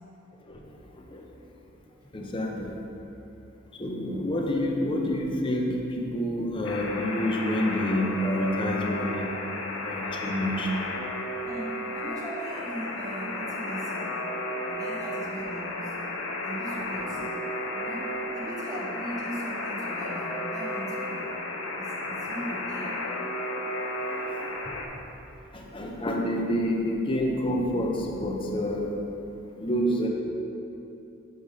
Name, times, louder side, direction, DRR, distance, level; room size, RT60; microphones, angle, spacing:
voice 1, 0.4-1.2 2.1-2.8 3.8-9.3 9.8-10.7 25.5-28.9 29.6-30.1, equal, 25° left, 0 dB, 0.6 m, -28 dB
Alarm, 6.6-24.9, left 1 dB, 75° left, 0.7 m, -33 dB
voice 2, 11.4-14.0 14.6-15.9 16.4-17.2 17.7-18.1 18.3-21.2 21.7-23.0, right 1 dB, 20° right, -5 dB, 1.0 m, -39 dB
5.6 x 5.3 x 4.8 m, 2.9 s
head